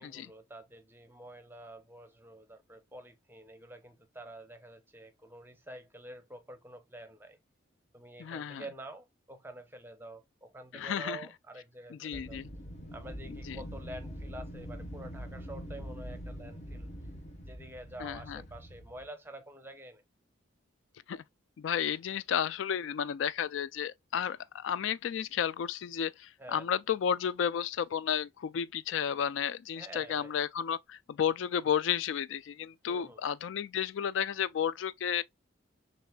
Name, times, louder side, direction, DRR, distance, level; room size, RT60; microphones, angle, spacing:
voice 1, 0.0-7.4 7.9-12.4 12.9-16.9 17.4-20.0 26.4-26.6 29.8-30.3 32.9-33.2, right 1 dB, 10° right, 0.7 m, -48 dB
voice 2, 8.2-8.6 10.7-11.2 11.9-12.5 13.5-13.6 18.0-18.4 21.1-21.2 21.6-35.2, left 8 dB, 75° left, 0.3 m, -32 dB
Wind, 12.1-19.1, equal, 35° left, 1.2 m, -44 dB
6.5 x 2.6 x 2.2 m
head